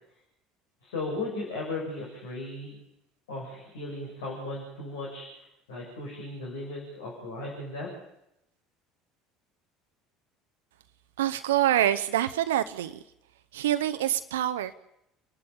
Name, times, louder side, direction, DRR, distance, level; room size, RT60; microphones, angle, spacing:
voice 1, 0.8-2.7 3.3-5.2 5.7-7.9, left 2 dB, 75° left, -3 dB, 6.2 m, -36 dB
voice 2, 11.2-13.0 13.5-14.7, right 12 dB, 75° right, 10 dB, 0.7 m, -26 dB
29.0 x 12.0 x 8.9 m, 0.84 s
figure-of-eight pair, 65°, 0 cm